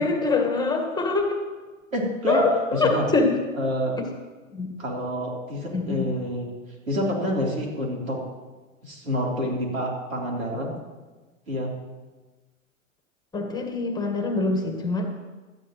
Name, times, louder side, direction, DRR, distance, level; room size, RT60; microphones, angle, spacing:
voice 1, 0.0-1.5 2.3-3.4 4.0-4.1 4.5-4.7 5.7-6.0 13.3-15.0, left 3 dB, 10° left, 3 dB, 1.7 m, -24 dB
voice 2, 1.9-2.5 2.7-3.1 3.6-4.0 4.8-6.5 6.8-8.2 8.8-10.8 11.5-11.7, equal, 90° right, -2 dB, 3.8 m, -27 dB
17.5 x 12.5 x 3.1 m, 1.3 s
hypercardioid pair, 110°, 39 cm